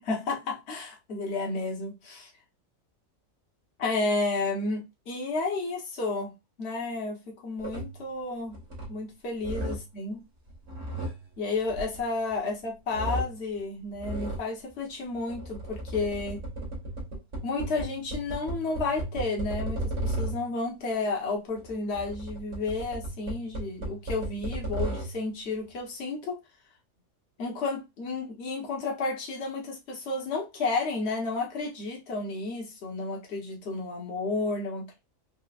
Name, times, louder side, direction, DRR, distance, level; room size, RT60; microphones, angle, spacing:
voice 1, 0.0-2.3 3.8-6.3 6.6-8.6 8.9-10.2 11.4-16.4 17.4-26.4 27.4-35.0, left 3 dB, 55° left, 1.3 m, -32 dB
sound 1, 7.6-8.1 8.5-9.1 9.4-10.0 10.5-12.5 12.9-13.5 14.0-14.5 15.2-20.6 21.6-25.3, right 1 dB, 70° right, 1.6 m, -35 dB
4.4 x 2.1 x 2.4 m
omnidirectional pair, 1.4 m